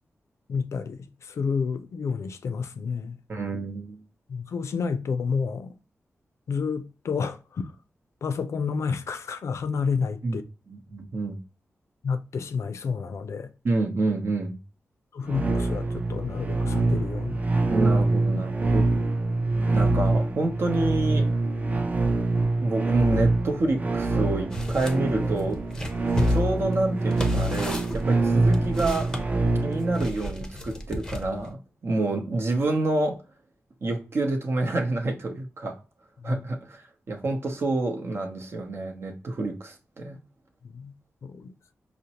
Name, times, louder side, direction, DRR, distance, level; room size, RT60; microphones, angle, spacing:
voice 1, 0.5-3.2 4.3-5.7 6.5-7.7 8.2-10.4 12.0-13.5 15.1-17.4 36.2-36.4 40.7-40.9 41.2-41.5, left 5 dB, 80° left, 0.4 m, -30 dB
voice 2, 3.3-4.0 10.2-10.4 10.7-11.4 13.6-14.6 17.7-18.8 19.7-21.3 22.6-25.6 26.3-29.1 29.6-33.2 33.8-35.8 36.2-40.2, right 2 dB, 60° right, 0.8 m, -28 dB
sound 1, 15.3-30.1, right 2 dB, 35° right, 0.5 m, -25 dB
sound 2, 24.5-25.0 25.4-29.2 29.9-31.5, equal, 10° left, 0.6 m, -34 dB
5.1 x 2.1 x 2.8 m
wide cardioid pair, 100°, 5 cm